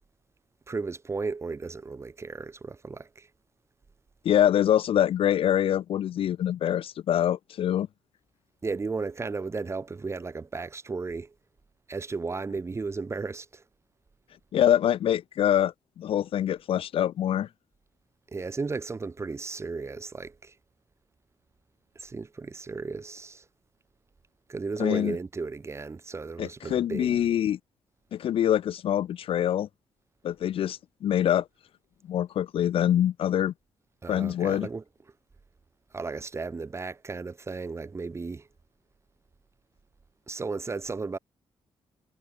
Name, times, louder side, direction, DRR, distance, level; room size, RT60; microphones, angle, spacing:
voice 1, 0.7-3.3 8.6-11.3 11.9-13.6 18.3-20.5 21.9-23.4 24.5-27.3 34.0-34.8 35.9-38.5 40.3-41.2, right 4 dB, 25° right, 1.5 m, -34 dB
voice 2, 4.2-7.9 14.5-17.5 24.8-25.2 26.4-27.6 28.1-29.7 30.2-31.5 32.1-33.5 34.1-34.7, left 10 dB, 60° left, 0.4 m, -25 dB
cardioid pair, 125°, 11 cm